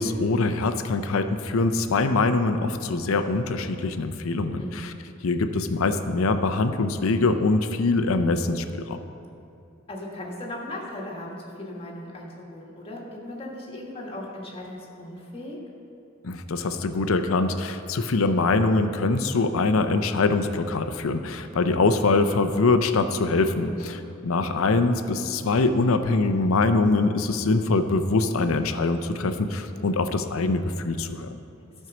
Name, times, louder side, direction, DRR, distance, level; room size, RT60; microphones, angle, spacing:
voice 1, 0.0-4.9 5.2-9.0 16.2-31.4, left 3 dB, 75° left, 9 dB, 0.6 m, -23 dB
voice 2, 9.9-15.6 23.6-24.0, left 1 dB, 30° left, -3 dB, 1.6 m, -37 dB
12.5 x 4.6 x 6.1 m, 2.8 s
head